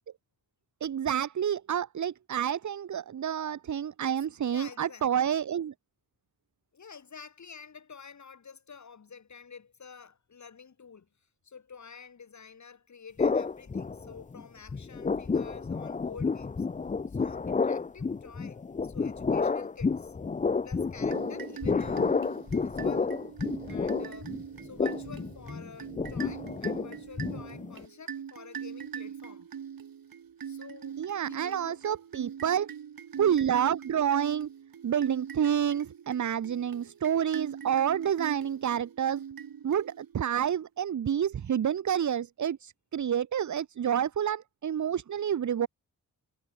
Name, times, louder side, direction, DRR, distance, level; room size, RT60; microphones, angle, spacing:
voice 1, 0.8-5.7 31.0-32.7 33.2-34.5 34.8-39.2 39.6-45.7, right 9 dB, 55° right, 0.9 m, -29 dB
voice 2, 4.4-5.1 6.7-11.1 11.4-16.7 17.1-20.2 20.6-22.1 22.5-23.2 23.7-29.5 30.4-31.0 31.3-31.8, left 6 dB, 55° left, 3.4 m, -50 dB
sound 1, 13.2-14.4 14.7-27.8, left 4 dB, 20° left, 0.6 m, -30 dB
sound 2, 21.1-40.3, right 8 dB, 85° right, 4.1 m, -42 dB
wide cardioid pair, 115°, 34 cm